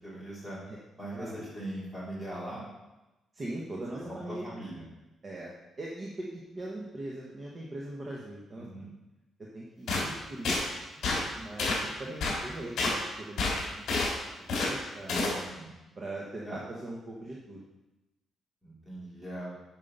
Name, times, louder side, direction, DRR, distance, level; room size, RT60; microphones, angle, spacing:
voice 1, 0.0-0.6 1.0-2.7 3.9-4.9 8.6-8.9 15.0-15.7 16.4-16.6 18.6-19.6, right 1 dB, 5° right, -7 dB, 3.0 m, -40 dB
voice 2, 3.3-4.5 5.2-5.5 5.8-8.9 9.5-14.1 14.5-15.2 16.0-17.6, right 1 dB, 30° right, -4 dB, 1.1 m, -41 dB
sound 1, 9.9-10.1 10.4-10.6 11.0-11.2 11.6-11.8 12.2-12.4 12.8-13.0 13.4-14.1 14.5-14.7 15.1-15.3, left 3 dB, 60° left, 3.2 m, -28 dB
8.8 x 5.5 x 5.5 m, 1.0 s
cardioid pair, 165°, 0 cm